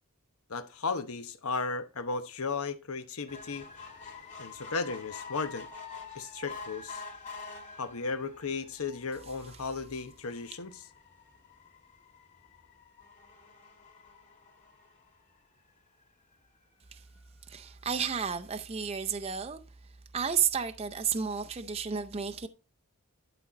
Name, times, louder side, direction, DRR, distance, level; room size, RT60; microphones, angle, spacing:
voice 1, 0.5-3.7 4.4-5.7 6.1-7.0 7.8-10.8, left 4 dB, 80° left, 0.9 m, -35 dB
sound 1, 3.3-15.9 16.4-16.5 16.8-16.9 17.2-17.3, left 4 dB, 35° left, 2.2 m, -48 dB
voice 2, 17.5-19.6 20.1-22.5, right 7 dB, 25° right, 0.5 m, -32 dB
11.0 x 4.2 x 5.1 m
head